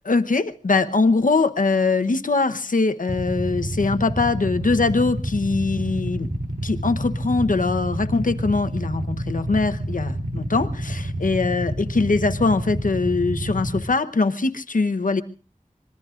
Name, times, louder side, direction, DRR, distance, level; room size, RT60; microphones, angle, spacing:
voice 1, 0.0-6.3 6.6-15.2, left 3 dB, 80° left, 9 dB, 0.9 m, -22 dB
Motorcycle / Idling, 3.1-13.8, right 1 dB, 75° right, 2.6 m, -29 dB
25.5 x 21.0 x 2.5 m, 0.39 s
wide cardioid pair, 50°, 14 cm